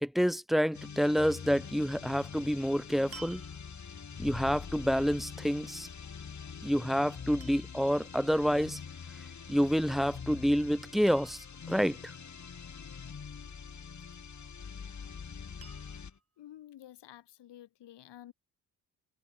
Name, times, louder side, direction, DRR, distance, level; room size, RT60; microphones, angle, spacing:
voice 1, 0.0-3.4 4.2-5.9 6.6-8.8 9.5-12.1, equal, ahead, 0.9 m, -28 dB
sound 1, 0.7-16.2, left 6 dB, 40° left, 2.4 m, -44 dB
sound 2, 2.1-2.4 3.1-4.0 6.4-6.8 7.4-7.9 9.9-10.3 10.6-10.7 11.1-11.7 14.0-14.6 15.6-16.2 17.0-17.1, right 4 dB, 35° right, 4.5 m, -53 dB
voice 2, 16.4-18.3, left 12 dB, 75° left, 5.4 m, -51 dB
hypercardioid pair, 45°, 42 cm